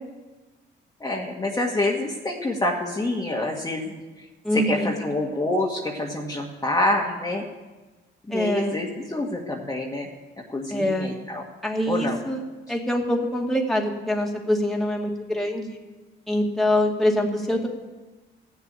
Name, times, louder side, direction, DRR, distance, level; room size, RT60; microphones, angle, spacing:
voice 1, 1.0-4.0 4.5-7.5 8.3-10.1 10.5-11.4 11.9-12.2, left 2 dB, 15° left, -3 dB, 1.7 m, -27 dB
voice 2, 4.4-4.9 8.3-8.8 10.7-11.2 11.6-12.4 12.7-15.8 16.3-17.7, left 1 dB, ahead, -1 dB, 2.2 m, -24 dB
14.5 x 7.2 x 9.0 m, 1.2 s
cardioid pair, 90°, 20 cm